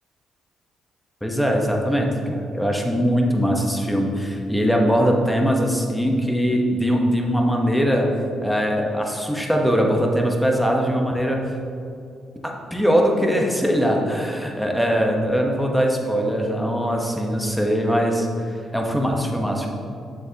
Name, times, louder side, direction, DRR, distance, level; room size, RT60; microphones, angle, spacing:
voice 1, 1.2-8.1 8.4-11.4 12.4-19.7, equal, 5° left, 1 dB, 0.9 m, -21 dB
7.3 x 6.6 x 2.8 m, 2.5 s
cardioid pair, 90°, 0 cm